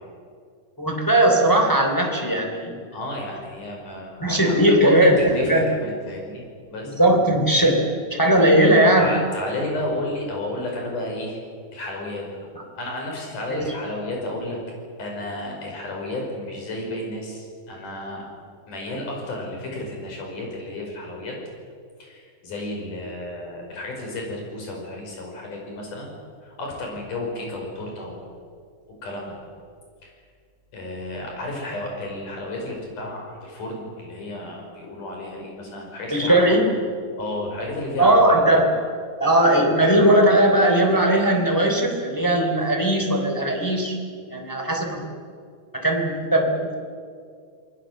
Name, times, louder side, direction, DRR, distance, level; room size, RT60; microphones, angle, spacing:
voice 1, 0.8-2.8 4.2-5.7 6.8-9.1 13.5-13.7 36.1-36.6 38.0-38.7 39.2-44.0 44.3-45.1 45.7-46.8, right 1 dB, 5° left, 1 dB, 2.7 m, -18 dB
voice 2, 2.9-5.1 5.3-6.9 9.0-11.4 11.7-12.3 12.7-14.6 15.0-18.2 18.7-21.4 22.0-26.1 26.6-28.3 29.0-29.4 30.0-30.1 30.7-36.4 37.2-38.2, left 1 dB, 60° left, 0 dB, 6.8 m, -32 dB
27.5 x 20.0 x 7.8 m, 2.1 s
omnidirectional pair, 4.1 m